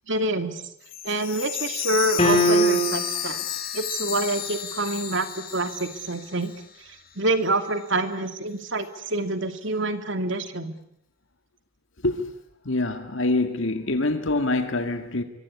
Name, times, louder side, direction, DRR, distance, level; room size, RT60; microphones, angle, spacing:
voice 1, 0.1-0.6 1.0-3.4 3.7-6.5 6.9-10.7, right 2 dB, 60° right, 2.7 m, -27 dB
Chime, 0.8-6.8 7.1-7.2 7.8-7.9, left 10 dB, 45° left, 4.1 m, -32 dB
sound 1, 2.2-3.2, equal, 25° left, 4.5 m, -20 dB
voice 2, 12.7-15.2, left 2 dB, 65° left, 2.0 m, -25 dB
25.0 x 23.5 x 9.7 m
head